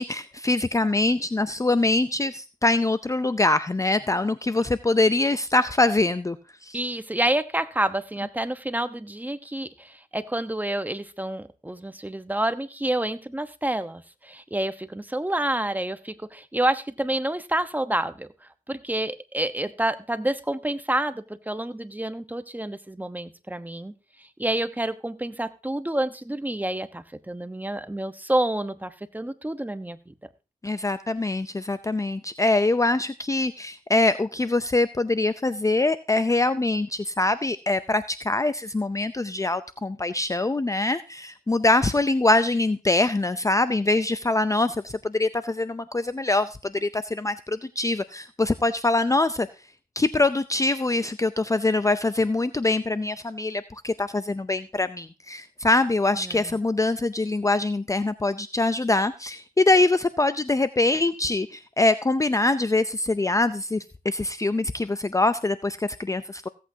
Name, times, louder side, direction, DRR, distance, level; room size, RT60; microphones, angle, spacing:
voice 1, 0.0-6.4 6.6-6.8 30.6-49.5 50.0-66.5, left 2 dB, 20° left, 13 dB, 0.6 m, -24 dB
voice 2, 6.7-18.3 18.7-23.9 24.4-30.1 56.2-56.5, right 1 dB, 10° right, 10 dB, 1.1 m, -28 dB
16.0 x 8.5 x 2.8 m, 0.32 s
cardioid pair, 55°, 15 cm